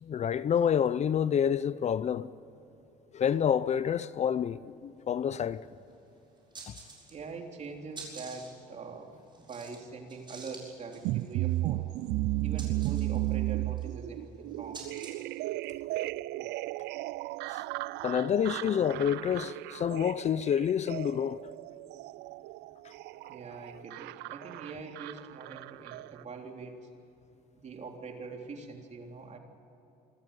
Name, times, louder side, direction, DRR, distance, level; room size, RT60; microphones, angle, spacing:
voice 1, 0.0-2.3 3.1-5.7 6.7-6.8 17.5-17.6 18.0-21.4, left 8 dB, 40° left, 0.6 m, -28 dB
sound 1, 5.5-5.6 5.9-6.0 6.4-7.4 7.6-15.4, right 3 dB, 25° right, 7.1 m, -49 dB
voice 2, 7.1-9.1 9.4-11.9 12.4-14.8 23.3-26.8 27.6-29.4, right 4 dB, 40° right, 3.6 m, -43 dB
sound 2, 11.0-26.2, right 19 dB, 85° right, 0.4 m, -35 dB
26.0 x 14.5 x 9.2 m
cardioid pair, 110°, 17 cm